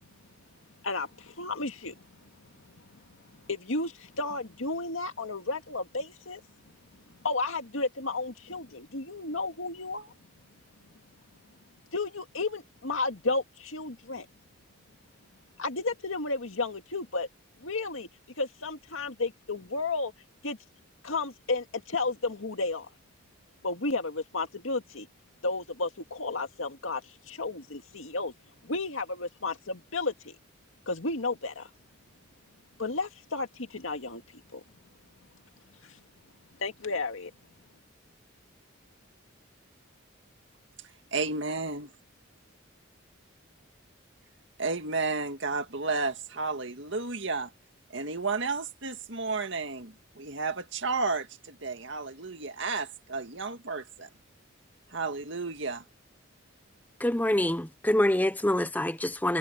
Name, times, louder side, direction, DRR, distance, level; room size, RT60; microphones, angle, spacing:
voice 1, 0.8-2.0 3.5-6.4 7.2-10.1 11.9-14.3 15.6-17.3 17.6-18.1 18.4-20.1 20.4-20.6 21.0-22.9 23.6-25.1 25.4-28.3 28.6-30.4 30.9-31.7 32.8-34.2 34.5-34.6 35.8-36.0 36.6-37.3, left 3 dB, 80° left, 2.0 m, -32 dB
voice 2, 41.1-41.9 44.6-47.5 47.9-54.1 54.9-55.8, right 4 dB, 60° right, 2.1 m, -32 dB
voice 3, 57.0-59.4, left 1 dB, 10° left, 0.7 m, -26 dB
head